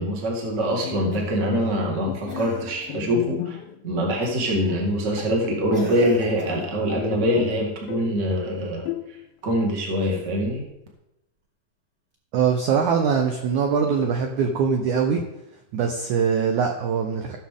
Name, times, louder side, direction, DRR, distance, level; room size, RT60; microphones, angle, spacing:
voice 1, 0.0-3.6 3.8-8.9 9.4-10.6, equal, 35° right, -1 dB, 1.1 m, -24 dB
Bowed string instrument, 0.8-3.9 4.2-4.4 4.9-5.0 5.2-7.1 7.4-8.2 8.9-9.5, left 15 dB, 80° left, 2.1 m, -35 dB
Cough, 1.1-1.5 2.3-3.0 4.2-4.5 5.7-6.8 9.9-10.7 12.1-12.2, right 1 dB, 20° right, 1.7 m, -41 dB
voice 2, 12.3-15.2 15.7-17.4, right 6 dB, 80° right, 3 dB, 1.7 m, -22 dB
16.5 x 6.6 x 3.7 m, 0.88 s
omnidirectional pair, 4.6 m